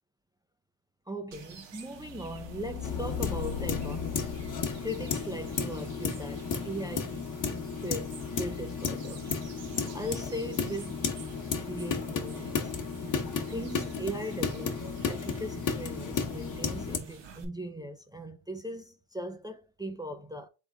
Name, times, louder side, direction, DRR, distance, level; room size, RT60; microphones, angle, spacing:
voice 1, 1.1-4.3 4.8-7.2 7.8-9.3 9.9-11.0 11.6-12.7 13.5-20.5, right 1 dB, 10° right, 0.4 m, -39 dB
sound 1, 1.3-17.4, right 7 dB, 65° right, 1.2 m, -52 dB
sound 2, 1.9-6.9, left 8 dB, 65° left, 0.9 m, -39 dB
sound 3, 2.8-17.0, left 5 dB, 40° left, 1.0 m, -34 dB
3.9 x 3.6 x 3.5 m
cardioid pair, 100°, 47 cm